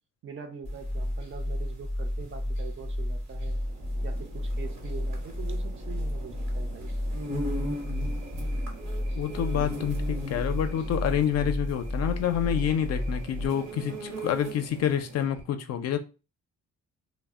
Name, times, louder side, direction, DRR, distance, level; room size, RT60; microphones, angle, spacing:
voice 1, 0.2-3.6 4.0-6.9, right 6 dB, 40° right, 0.6 m, -43 dB
sound 1, 0.6-13.5, left 1 dB, ahead, 0.6 m, -32 dB
sound 2, 0.7-14.9, equal, 60° right, 1.0 m, -40 dB
sound 3, 3.4-15.4, right 5 dB, 80° right, 0.7 m, -48 dB
voice 2, 9.2-16.0, left 9 dB, 55° left, 0.4 m, -28 dB
2.0 x 2.0 x 3.5 m
cardioid pair, 90°, 30 cm